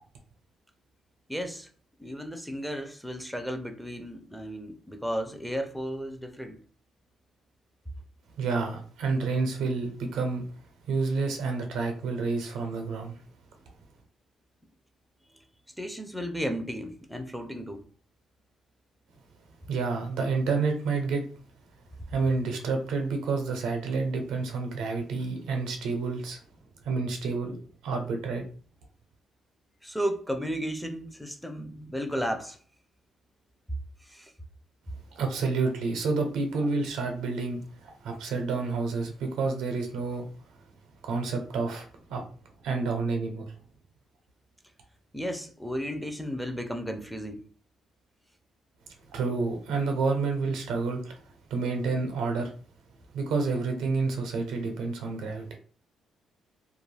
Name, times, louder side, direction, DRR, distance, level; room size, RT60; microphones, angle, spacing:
voice 1, 1.3-1.7 2.0-6.6 15.8-17.8 29.8-32.6 34.0-34.3 45.1-47.5, equal, ahead, 0.4 m, -34 dB
voice 2, 8.4-10.4 10.9-13.2 19.7-21.3 22.1-26.4 26.8-28.4 35.1-40.3 41.0-42.3 42.6-43.5 49.1-51.2 51.5-52.5 53.1-55.6, right 4 dB, 85° right, 0.6 m, -29 dB
2.3 x 2.1 x 3.2 m
cardioid pair, 90°, 0 cm